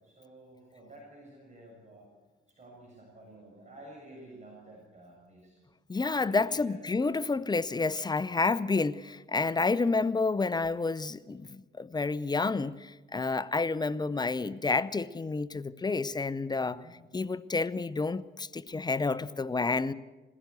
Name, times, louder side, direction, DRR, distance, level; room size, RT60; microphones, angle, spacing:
voice 1, 0.0-2.1 2.5-5.6 6.2-6.8 16.6-17.0, right 1 dB, 35° right, 6.8 m, -51 dB
voice 2, 5.9-16.8 17.1-19.9, left 3 dB, 20° left, 0.7 m, -29 dB
21.0 x 16.5 x 8.3 m
cardioid pair, 90°, 20 cm